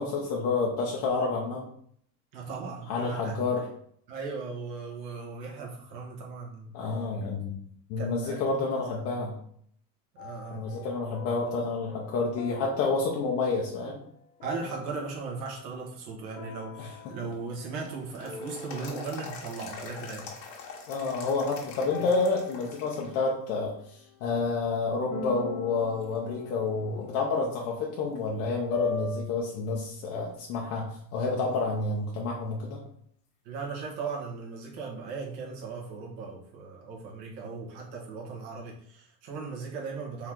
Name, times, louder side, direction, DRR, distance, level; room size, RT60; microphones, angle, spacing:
voice 1, 0.0-1.6 2.9-3.7 6.7-7.6 7.9-9.4 10.5-14.0 16.8-17.1 20.9-32.8, left 3 dB, 30° left, -2 dB, 0.5 m, -29 dB
voice 2, 2.3-3.4 4.1-7.0 8.0-9.2 10.1-10.7 14.4-20.3 33.4-40.3, right 4 dB, 75° right, -2 dB, 1.7 m, -38 dB
sound 1, 10.2-15.6 16.3-18.0 18.2-19.5 21.1-24.2 25.1-29.2, left 5 dB, 60° left, 0.9 m, -41 dB
sound 2, 17.1-23.2 23.6-23.7 24.4-24.9 25.4-25.5 26.0-27.2 27.6-27.7 31.0-31.1 34.1-34.2, left 4 dB, 90° left, 1.4 m, -44 dB
4.5 x 3.1 x 3.7 m, 0.65 s
supercardioid pair, 160°, 50 cm